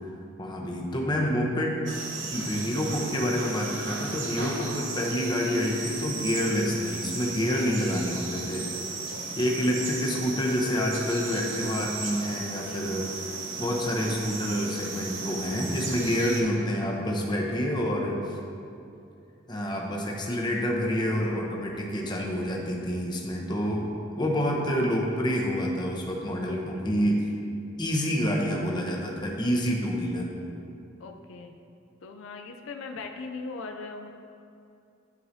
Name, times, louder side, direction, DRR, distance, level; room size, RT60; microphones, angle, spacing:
voice 1, 0.4-1.8 2.3-8.8 9.4-13.1 13.6-18.4 19.5-23.9 24.1-27.2 27.8-30.3, equal, 25° left, -1 dB, 0.8 m, -28 dB
voice 2, 1.0-1.4 6.7-6.9 7.7-8.1 9.1-9.5 12.5-12.9 15.8-16.1 26.4-27.0 31.0-31.6 32.0-34.1, left 3 dB, 80° left, 4 dB, 0.4 m, -42 dB
sound 1, 1.9-16.4, right 3 dB, 70° right, 0.9 m, -35 dB
10.5 x 4.8 x 2.7 m, 2.6 s
head